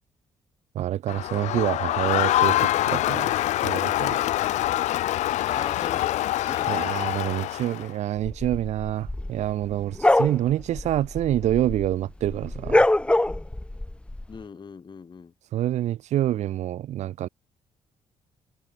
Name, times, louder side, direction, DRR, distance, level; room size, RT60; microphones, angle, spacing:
voice 1, 0.7-3.3 3.6-4.2 6.7-12.9 15.5-17.3, right 12 dB, 70° right, 0.6 m, -27 dB
Crowd, 1.1-7.9, left 14 dB, 75° left, 0.4 m, -25 dB
voice 2, 5.5-6.8 14.3-15.3, left 5 dB, 40° left, 1.6 m, -40 dB
sound 1, 8.3-11.9 12.2-14.2, left 1 dB, 10° left, 0.8 m, -24 dB
supercardioid pair, 70°, 12 cm